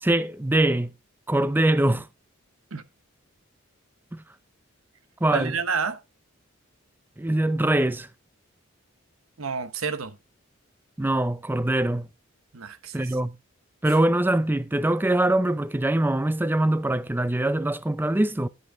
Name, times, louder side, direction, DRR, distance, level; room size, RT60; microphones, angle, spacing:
voice 1, 0.0-0.9 1.3-2.1 4.1-4.2 5.2-5.5 7.2-8.1 11.0-12.1 12.9-13.4 13.8-18.5, right 1 dB, 10° right, 0.4 m, -23 dB
voice 2, 5.3-6.0 9.4-10.2 12.5-13.2, right 5 dB, 85° right, 1.0 m, -29 dB
11.0 x 7.9 x 3.6 m
head